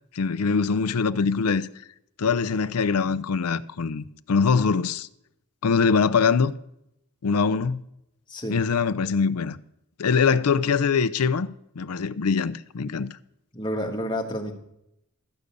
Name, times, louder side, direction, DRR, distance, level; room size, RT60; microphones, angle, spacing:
voice 1, 0.1-1.7 2.2-5.1 5.6-6.6 7.2-7.8 8.5-9.6 10.0-11.5 11.8-13.1, left 5 dB, 90° left, 0.5 m, -23 dB
voice 2, 8.3-8.6 13.5-14.5, equal, 20° left, 1.5 m, -29 dB
13.5 x 5.2 x 8.3 m
head